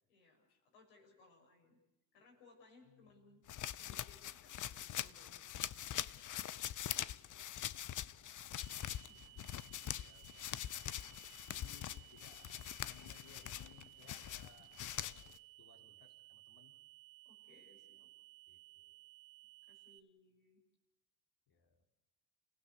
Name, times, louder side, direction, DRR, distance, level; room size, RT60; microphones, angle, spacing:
voice 1, 0.1-1.8 2.1-3.4 3.7-5.5 9.1-9.5 17.3-18.1 19.6-20.6, left 3 dB, 80° left, 2 dB, 7.0 m, -66 dB
voice 2, 2.8-3.7 7.0-7.5 7.8-8.5 9.8-10.9 11.5-16.7 18.5-19.0 21.5-21.8, left 6 dB, 60° left, 4 dB, 4.4 m, -66 dB
sound 1, 3.5-15.4, left 11 dB, 40° left, 0.8 m, -43 dB
sound 2, 8.6-20.0, right 21 dB, 65° right, 1.2 m, -60 dB
29.0 x 16.5 x 8.1 m, 0.97 s
hypercardioid pair, 65°, 45 cm